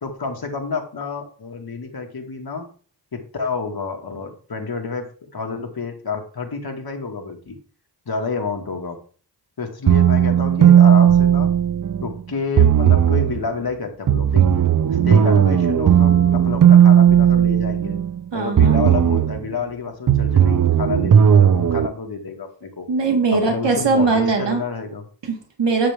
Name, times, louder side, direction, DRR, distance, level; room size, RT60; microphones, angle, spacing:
voice 1, 0.0-2.7 3.1-7.6 8.1-9.0 9.6-11.5 12.0-14.5 14.9-18.0 18.3-22.9 23.3-25.1, left 4 dB, 55° left, 3 dB, 2.0 m, -29 dB
sound 1, 9.9-12.1 12.6-13.4 14.1-18.2 18.6-19.4 20.1-21.9, right 9 dB, 50° right, 0.6 m, -15 dB
voice 2, 18.3-18.8 22.9-24.6 25.2-25.9, right 4 dB, 75° right, 2 dB, 1.9 m, -20 dB
10.0 x 7.0 x 3.5 m, 0.40 s
wide cardioid pair, 100°, 43 cm